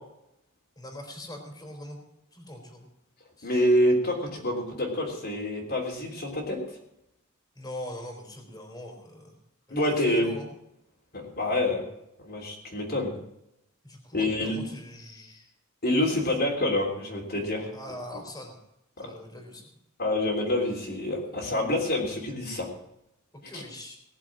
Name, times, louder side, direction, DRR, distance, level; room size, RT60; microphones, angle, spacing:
voice 1, 0.8-2.0 2.3-2.9 3.4-3.5 7.5-9.4 9.7-10.5 13.8-15.5 16.2-16.4 17.7-18.6 19.0-19.7 23.3-24.0, left 1 dB, 15° left, 2 dB, 4.0 m, -42 dB
voice 2, 3.4-6.6 9.7-10.3 11.1-11.8 12.2-13.1 14.1-14.6 15.8-17.7 19.0-19.1 20.0-22.7 23.5-23.6, left 1 dB, 45° left, -2 dB, 3.4 m, -27 dB
19.0 x 7.5 x 7.5 m, 0.82 s
head